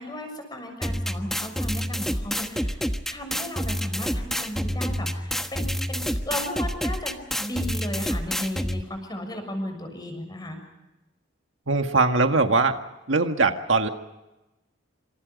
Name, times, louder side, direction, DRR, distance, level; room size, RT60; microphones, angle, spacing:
voice 1, 0.0-2.8 3.1-10.6, left 1 dB, 20° left, 5 dB, 6.6 m, -35 dB
sound 1, 0.8-8.8, equal, ahead, 1.3 m, -28 dB
voice 2, 11.7-12.8 13.1-13.9, right 3 dB, 75° right, 6 dB, 1.7 m, -21 dB
28.0 x 26.5 x 5.3 m, 1.0 s
head